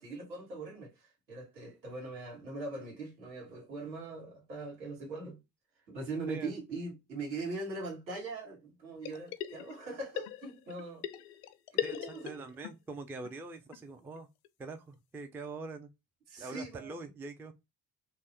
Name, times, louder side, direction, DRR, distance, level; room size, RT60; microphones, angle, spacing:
voice 1, 0.0-5.4 5.9-11.0 11.7-12.4 16.3-17.1, right 3 dB, 85° right, 1.2 m, -41 dB
sound 1, 9.0-9.9 10.2-12.7 13.0-13.1 13.2-13.3 13.7-13.8 14.2-14.3 14.4-14.5 14.9-15.0, left 12 dB, 70° left, 0.5 m, -39 dB
voice 2, 11.8-14.3 14.6-15.9 16.4-17.5, right 3 dB, 5° right, 0.3 m, -44 dB
3.0 x 2.3 x 4.1 m
figure-of-eight pair, 40°, 50 cm